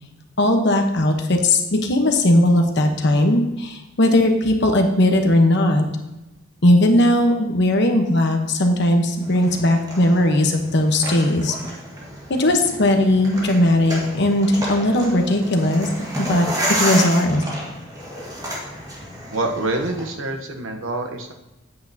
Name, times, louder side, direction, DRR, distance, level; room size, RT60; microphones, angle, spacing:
voice 1, 0.4-5.8 6.6-11.5 12.3-15.9 16.2-16.5 16.8-17.4, left 1 dB, 60° left, 4 dB, 1.1 m, -18 dB
sound 1, 9.2-20.1, equal, 20° right, 1.7 m, -30 dB
voice 2, 19.3-21.3, right 2 dB, 75° right, 4 dB, 1.0 m, -26 dB
8.5 x 8.3 x 2.8 m, 1.0 s
head